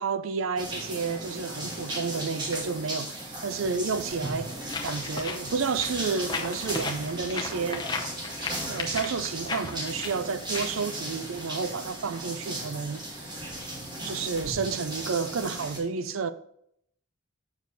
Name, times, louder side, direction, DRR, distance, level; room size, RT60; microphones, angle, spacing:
voice 1, 0.0-4.5 4.8-8.1 8.7-13.3 14.0-16.3, right 5 dB, 70° right, 0.5 m, -31 dB
sound 1, 0.6-15.8, right 1 dB, 20° right, 1.3 m, -36 dB
sound 2, 4.7-11.7, left 4 dB, 20° left, 0.6 m, -36 dB
7.1 x 6.5 x 4.0 m
head